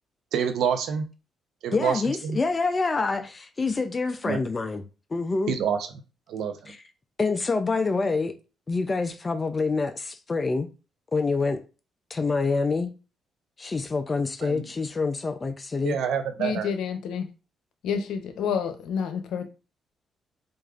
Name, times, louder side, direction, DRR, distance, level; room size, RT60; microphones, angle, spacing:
voice 1, 0.3-1.1 1.6-2.4 4.3-4.4 5.5-5.8 6.3-6.7 14.4-14.6 15.8-16.7, right 7 dB, 80° right, 0.6 m, -27 dB
voice 2, 1.7-4.8 5.1-5.6 6.7-6.8 7.2-8.3 8.7-10.7 11.1-11.6 12.1-12.9 13.6-16.0, left 4 dB, 30° left, 0.4 m, -26 dB
voice 3, 16.4-17.3 17.8-19.4, left 7 dB, 80° left, 0.7 m, -29 dB
4.7 x 2.5 x 2.4 m
cardioid pair, 90°, 0 cm